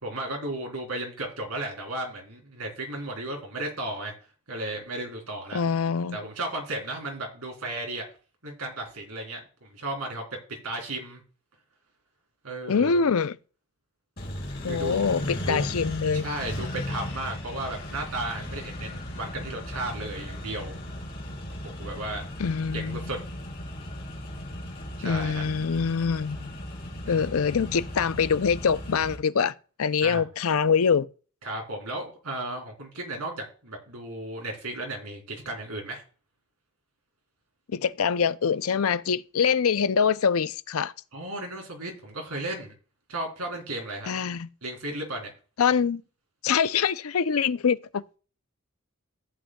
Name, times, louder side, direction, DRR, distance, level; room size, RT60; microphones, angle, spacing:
voice 1, 0.0-4.1 4.5-5.6 6.1-8.1 8.4-9.4 9.7-10.2 10.6-11.2 12.4-13.0 14.7-15.1 15.5-15.7 16.1-20.7 21.6-22.3 22.7-23.2 25.0-25.4 27.0-27.5 30.0-30.2 31.4-36.0 41.1-42.7 43.1-44.1 44.6-45.3, right 2 dB, 85° right, 3.6 m, -34 dB
voice 2, 5.5-6.2 12.7-13.4 14.6-16.2 22.4-23.1 25.0-26.5 27.1-29.5 29.8-31.1 37.7-40.9 44.1-44.5 45.6-46.0 46.4-48.0, left 6 dB, 75° left, 0.5 m, -24 dB
Accelerating revving vroom, 14.2-29.2, left 1 dB, 45° left, 3.6 m, -36 dB
14.0 x 8.8 x 2.3 m
head